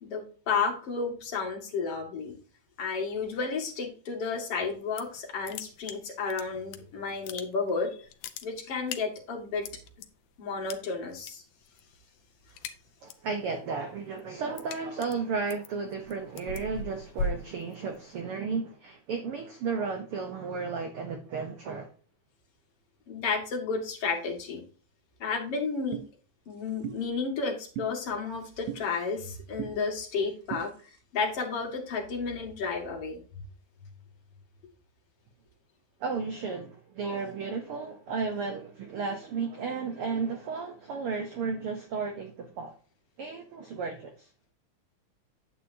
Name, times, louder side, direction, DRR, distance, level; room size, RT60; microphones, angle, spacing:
voice 1, 0.0-2.3 2.8-8.1 8.4-9.6 10.4-11.4 23.1-24.6 25.2-26.0 26.5-30.7 31.1-33.2, left 4 dB, 50° left, 2.6 m, -32 dB
sound 1, 4.7-5.2 5.4-6.8 7.1-7.8 8.1-10.1 10.7-11.3 11.6-11.9 12.2-13.3 13.7-18.2, left 3 dB, 80° left, 2.2 m, -38 dB
voice 2, 13.0-21.9 36.0-42.7 43.2-44.3, right 5 dB, 65° right, 1.4 m, -34 dB
sound 2, 25.9-26.1 26.8-27.0 27.8-27.9 28.7-28.8 29.6-29.7 30.5-30.7, right 12 dB, 85° right, 1.4 m, -35 dB
9.2 x 8.4 x 2.7 m
omnidirectional pair, 3.6 m